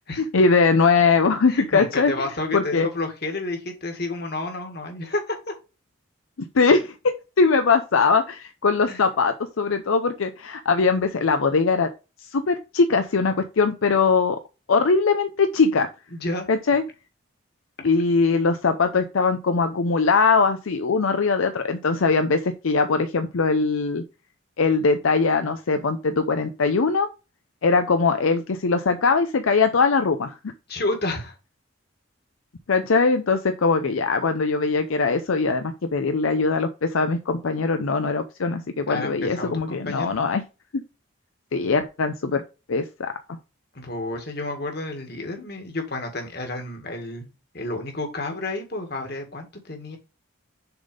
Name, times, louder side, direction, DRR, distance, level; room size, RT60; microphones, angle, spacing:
voice 1, 0.2-2.3 2.5-2.9 6.5-11.9 12.2-14.4 14.7-15.9 16.5-16.8 17.8-24.0 24.6-27.1 27.6-30.4 32.7-40.4 40.7-40.8 41.5-42.4 42.7-43.1, left 4 dB, 80° left, 8 dB, 0.6 m, -21 dB
voice 2, 1.5-5.5 8.9-9.0 16.1-16.5 17.8-17.9 30.7-31.3 38.9-40.2 43.7-50.0, left 2 dB, 50° left, 3 dB, 1.9 m, -30 dB
6.8 x 4.1 x 5.0 m, 0.30 s
head